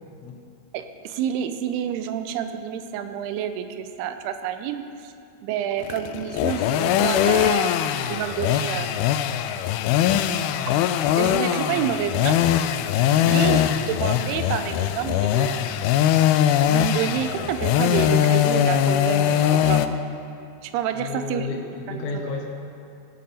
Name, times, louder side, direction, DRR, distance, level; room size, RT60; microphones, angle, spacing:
voice 1, 0.7-5.1 5.4-9.1 11.2-12.4 13.2-15.8 16.7-20.0 20.6-21.5 21.9-22.2, right 9 dB, 85° right, 8 dB, 2.6 m, -28 dB
sound 1, 5.8-19.9, left 11 dB, 85° left, 2.2 m, -21 dB
voice 2, 21.0-22.5, left 3 dB, 70° left, 0 dB, 1.8 m, -32 dB
17.5 x 9.4 x 4.2 m, 2.5 s
omnidirectional pair, 4.7 m